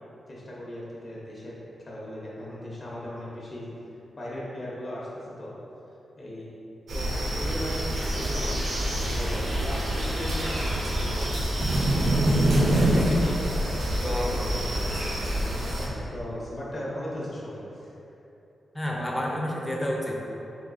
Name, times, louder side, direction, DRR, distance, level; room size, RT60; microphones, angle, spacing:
voice 1, 0.3-1.6 1.9-3.7 4.1-5.5 6.2-6.5 6.9-11.5 15.7-17.6 18.9-19.2, left 1 dB, 40° left, -6 dB, 0.9 m, -37 dB
sound 1, 6.9-15.9, right 1 dB, 75° right, 0.9 m, -26 dB
voice 2, 12.8-13.4 14.0-15.1 18.7-20.1, equal, 15° left, -2 dB, 0.6 m, -31 dB
3.6 x 2.9 x 4.0 m, 3.0 s
cardioid pair, 95°, 0 cm